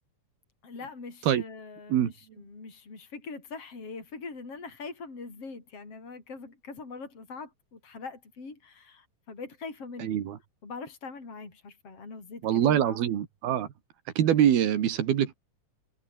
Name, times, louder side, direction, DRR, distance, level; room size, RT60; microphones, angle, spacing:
voice 1, 0.6-10.2 10.6-13.0, left 4 dB, 40° left, 7.1 m, -42 dB
voice 2, 10.0-10.4 12.4-13.7 14.2-15.3, right 10 dB, 85° right, 4.1 m, -24 dB
omnidirectional pair, 4.3 m